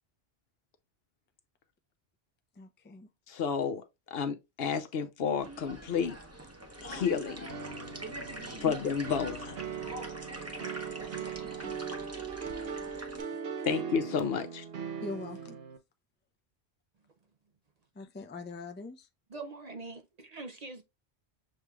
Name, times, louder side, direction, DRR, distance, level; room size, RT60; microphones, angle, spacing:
voice 1, 2.6-3.1 8.6-8.8 11.5-11.9 15.0-15.6 17.9-19.1, left 3 dB, 15° left, 0.4 m, -43 dB
voice 2, 3.3-3.8 4.1-6.2 6.8-7.5 8.6-9.6 13.6-14.6, left 6 dB, 70° left, 0.9 m, -31 dB
sound 1, 5.3-13.2, right 1 dB, 15° right, 0.8 m, -44 dB
sound 2, 7.5-15.8, right 6 dB, 70° right, 1.0 m, -39 dB
voice 3, 19.3-20.8, right 3 dB, 50° right, 0.5 m, -43 dB
6.5 x 3.1 x 2.3 m
omnidirectional pair, 1.1 m